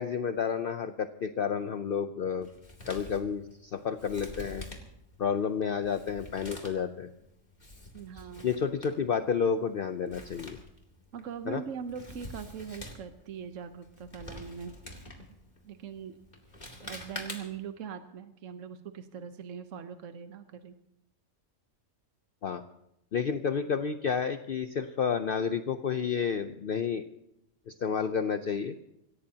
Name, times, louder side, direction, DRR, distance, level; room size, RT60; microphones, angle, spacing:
voice 1, 0.0-2.5 2.9-4.6 5.2-7.1 8.4-10.6 11.5-11.6 22.4-22.6 23.1-27.0 27.7-28.8, left 6 dB, 55° left, 9 dB, 0.8 m, -30 dB
Male speech man speaking, 2.4-17.7, left 1 dB, 35° left, 2.6 m, -47 dB
voice 2, 7.9-8.5 11.1-14.7 15.6-16.2 16.8-20.7, right 7 dB, 75° right, 8 dB, 1.3 m, -41 dB
26.0 x 17.0 x 2.9 m, 0.83 s
omnidirectional pair, 1.3 m